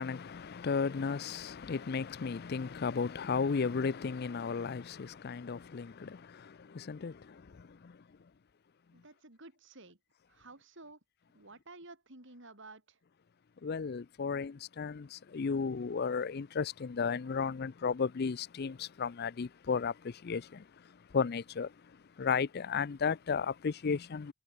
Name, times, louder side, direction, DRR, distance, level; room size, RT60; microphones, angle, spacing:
voice 1, 0.0-8.0 13.6-24.3, left 5 dB, 45° left, 0.5 m, -34 dB
voice 2, 8.9-10.0 10.3-11.0 11.3-13.0, right 2 dB, 55° right, 4.8 m, -53 dB
head